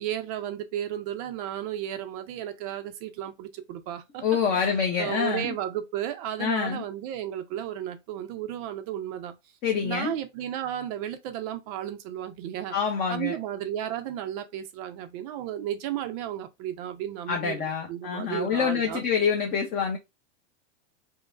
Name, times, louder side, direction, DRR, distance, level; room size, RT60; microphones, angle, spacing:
voice 1, 0.0-4.2 4.5-9.3 9.8-12.8 13.1-19.0, right 11 dB, 30° right, 0.5 m, -34 dB
voice 2, 4.2-5.6 6.4-6.8 9.6-10.2 12.7-13.4 17.3-20.0, left 6 dB, 25° left, 0.6 m, -26 dB
5.4 x 2.1 x 2.4 m
supercardioid pair, 150°, 37 cm